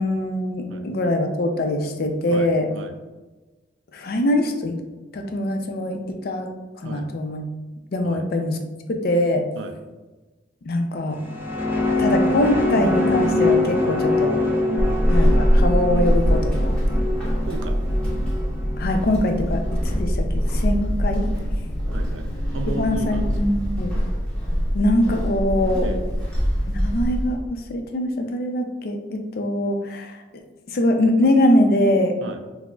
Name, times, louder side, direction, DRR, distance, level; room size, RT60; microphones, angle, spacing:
voice 1, 0.0-2.7 3.9-4.8 5.1-6.5 6.8-7.4 7.9-8.6 9.0-9.4 10.6-11.2 12.0-14.4 15.1-17.0 18.8-21.3 22.8-23.9 24.7-25.9 26.7-30.2 30.7-32.1, left 1 dB, 55° left, 4 dB, 0.4 m, -23 dB
sound 1, 11.1-19.8, left 2 dB, 10° right, 0.5 m, -24 dB
Walk footsteps / Squeak, 14.8-27.4, equal, 5° left, 1.1 m, -23 dB
voice 2, 17.4-17.8 21.9-23.3 25.8-26.0 32.2-32.4, right 3 dB, 80° right, 5 dB, 0.3 m, -34 dB
5.9 x 2.0 x 2.3 m, 1.2 s
head